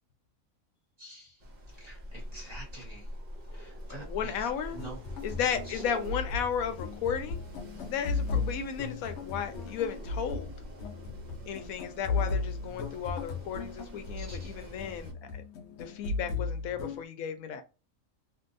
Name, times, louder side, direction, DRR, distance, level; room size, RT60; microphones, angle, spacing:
voice 1, 1.0-1.3 1.8-3.1 3.5-4.5 4.7-5.0 5.7-5.8 14.2-14.5, right 2 dB, 30° right, 1.3 m, -47 dB
Wind, 1.4-15.1, equal, 45° right, 0.6 m, -45 dB
voice 2, 3.9-4.8 5.2-7.4 7.9-10.5 11.5-15.4 15.8-17.6, left 8 dB, 90° left, 1.0 m, -34 dB
sound 1, 4.7-17.0, left 4 dB, 65° left, 0.8 m, -36 dB
2.8 x 2.7 x 2.5 m
omnidirectional pair, 1.4 m